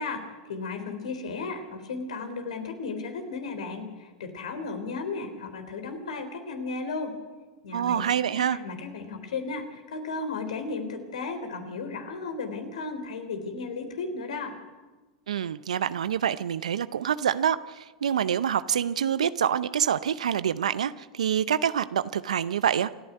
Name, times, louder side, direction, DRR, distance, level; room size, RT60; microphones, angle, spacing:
voice 1, 0.0-7.1 7.6-14.5, left 4 dB, 75° left, 7 dB, 3.7 m, -35 dB
voice 2, 7.7-8.6 15.3-22.9, right 9 dB, 80° right, 15 dB, 0.6 m, -26 dB
27.5 x 10.5 x 9.4 m, 1.2 s
hypercardioid pair, 100°, 4 cm